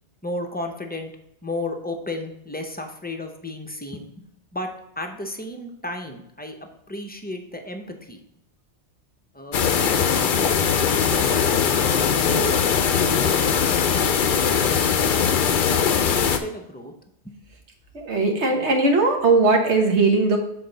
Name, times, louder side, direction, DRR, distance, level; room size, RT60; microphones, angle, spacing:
voice 1, 0.2-1.1 1.4-4.3 4.5-6.5 6.9-8.2 9.3-12.5 15.6-15.8 16.1-16.9 17.2-17.3, left 1 dB, 10° left, 4 dB, 0.5 m, -34 dB
sound 1, 9.5-16.4, left 7 dB, 55° left, 0.7 m, -20 dB
voice 2, 17.9-20.4, right 3 dB, 80° right, 3 dB, 1.4 m, -19 dB
7.5 x 4.2 x 3.9 m, 0.79 s
omnidirectional pair, 1.2 m